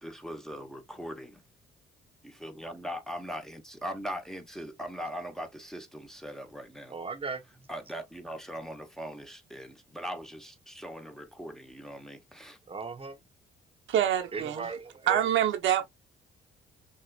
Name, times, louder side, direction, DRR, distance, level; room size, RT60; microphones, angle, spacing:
voice 1, 0.0-1.4 2.2-6.9 7.7-12.6, equal, ahead, 0.9 m, -40 dB
voice 2, 6.9-7.4 12.7-13.2 14.3-15.2, right 4 dB, 30° right, 0.9 m, -37 dB
voice 3, 13.9-14.7 15.1-15.9, right 10 dB, 80° right, 0.9 m, -26 dB
6.2 x 2.4 x 2.3 m
cardioid pair, 90°, 20 cm